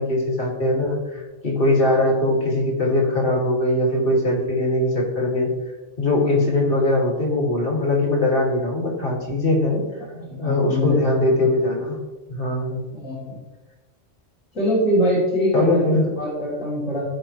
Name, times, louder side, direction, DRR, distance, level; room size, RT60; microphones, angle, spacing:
voice 1, 0.0-5.5 6.0-9.8 10.4-12.0 12.3-12.8 15.5-16.0, left 1 dB, 45° left, -2 dB, 2.8 m, -21 dB
voice 2, 10.1-11.1 12.9-13.4 14.5-17.0, equal, 85° left, -10 dB, 3.9 m, -23 dB
17.0 x 6.0 x 3.3 m, 1.2 s
omnidirectional pair, 1.3 m